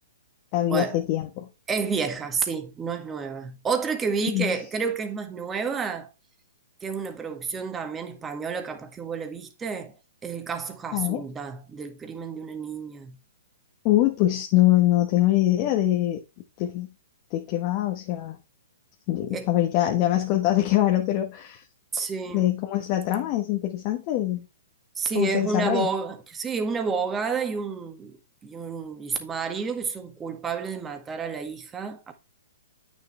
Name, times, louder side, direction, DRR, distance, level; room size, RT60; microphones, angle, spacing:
voice 1, 0.5-1.5 4.3-4.5 10.9-11.2 13.8-16.2 16.6-16.9 17.3-18.4 19.1-21.6 22.3-24.4 25.1-25.9, left 14 dB, 40° left, 1.4 m, -23 dB
voice 2, 1.7-6.1 6.8-9.9 10.2-13.2 19.3-19.5 21.9-22.5 25.0-32.1, right 5 dB, 15° right, 1.8 m, -30 dB
8.9 x 6.6 x 3.3 m
hypercardioid pair, 125°, 0 cm